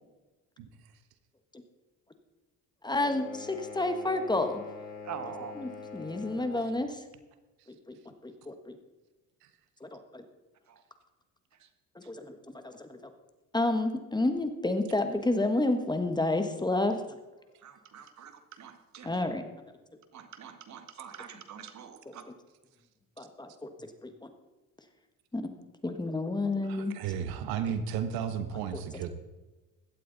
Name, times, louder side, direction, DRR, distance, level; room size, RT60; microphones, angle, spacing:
voice 1, 2.8-4.6 5.5-7.0 7.7-8.8 9.8-10.2 11.9-13.1 13.5-17.2 19.0-19.4 22.1-22.2 23.2-24.3 25.3-25.6 25.8-26.9 28.7-29.1, left 2 dB, 10° left, 7 dB, 1.3 m, -31 dB
sound 1, 2.9-6.7, left 5 dB, 85° left, 5.6 m, -44 dB
voice 2, 5.0-5.6 10.7-10.8 11.6-11.7 12.0-12.1 17.6-19.2 20.1-22.2, right 8 dB, 50° right, 8 dB, 1.8 m, -45 dB
voice 3, 26.7-29.1, right 8 dB, 80° right, 10 dB, 1.3 m, -33 dB
16.5 x 12.0 x 4.0 m, 1.2 s
cardioid pair, 115°, 36 cm